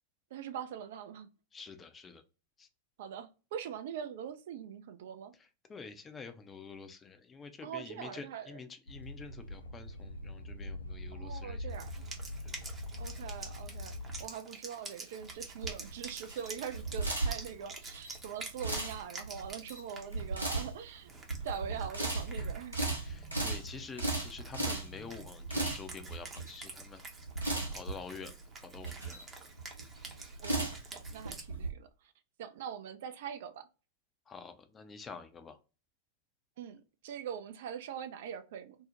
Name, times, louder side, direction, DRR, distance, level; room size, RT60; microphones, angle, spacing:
voice 1, 0.3-1.3 3.0-5.3 7.6-8.6 11.1-11.9 13.0-13.9 14.2-21.1 21.4-23.0 30.4-31.9 32.4-33.7 36.6-38.8, right 8 dB, 55° right, 0.3 m, -43 dB
voice 2, 1.5-2.2 2.6-2.7 5.7-11.7 12.4-12.5 23.0-27.2 27.7-28.3 28.6-29.3 34.3-35.6, left 5 dB, 20° left, 0.4 m, -48 dB
sound 1, 8.9-14.3, left 1 dB, 85° left, 0.3 m, -43 dB
Wind instrument woodwind instrument, 11.7-31.4, right 3 dB, 20° right, 0.6 m, -49 dB
sound 2, 15.2-31.7, right 2 dB, 80° right, 0.8 m, -37 dB
2.6 x 2.0 x 2.8 m
figure-of-eight pair, 90°, 0 cm